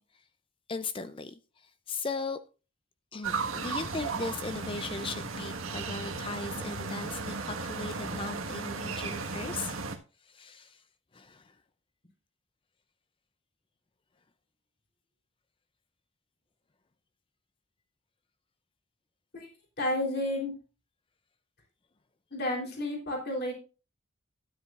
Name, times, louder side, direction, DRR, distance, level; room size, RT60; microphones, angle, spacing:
voice 1, 0.7-2.4 3.1-9.8 10.2-10.8 11.1-11.5, left 4 dB, 25° left, 0.4 m, -38 dB
sound 1, 3.2-10.0, right 4 dB, 80° right, 1.5 m, -35 dB
voice 2, 19.8-20.5 22.3-23.5, left 1 dB, 50° left, 3.4 m, -31 dB
12.0 x 10.0 x 2.4 m
head